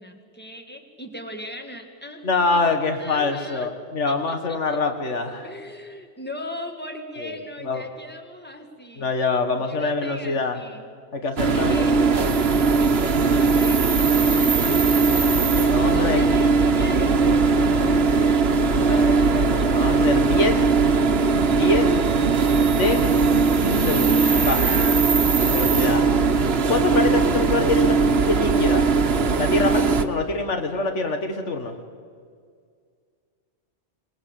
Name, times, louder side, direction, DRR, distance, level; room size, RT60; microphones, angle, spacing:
voice 1, 0.0-2.7 3.0-3.7 4.1-4.8 5.4-9.1 9.6-10.9 11.5-11.9 12.8-14.9 15.9-18.6 18.9-19.9 25.0-25.8, left 1 dB, 10° left, 4 dB, 2.2 m, -39 dB
voice 2, 2.2-5.5 7.2-7.4 7.6-7.8 9.0-10.6 11.1-12.2 15.1-16.2 18.8-20.6 21.5-22.0 22.6-23.2 23.6-24.6 25.5-26.0 26.7-28.9 29.4-31.8, left 3 dB, 90° left, 6 dB, 2.0 m, -25 dB
sound 1, 11.4-30.0, right 4 dB, 60° right, 1.3 m, -19 dB
26.5 x 19.0 x 8.3 m, 2.1 s
omnidirectional pair, 1.2 m